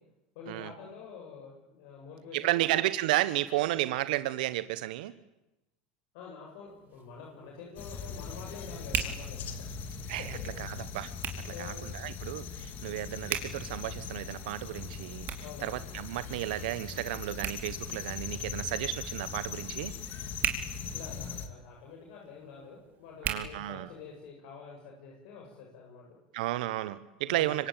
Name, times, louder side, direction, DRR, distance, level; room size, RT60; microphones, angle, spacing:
voice 1, 0.3-2.7 6.1-9.4 11.5-11.8 15.4-15.8 20.9-26.2 27.2-27.6, left 5 dB, 70° left, -1 dB, 7.8 m, -47 dB
voice 2, 2.3-5.1 10.1-11.1 11.4-15.3 15.6-20.0 23.2-23.9 26.3-27.7, right 16 dB, 75° right, 13 dB, 1.2 m, -32 dB
Hands, 6.7-24.3, right 8 dB, 40° right, 4.5 m, -42 dB
sound 1, 7.8-21.5, left 6 dB, 45° left, 3.1 m, -40 dB
25.5 x 25.0 x 9.1 m, 0.96 s
supercardioid pair, 110°, 5 cm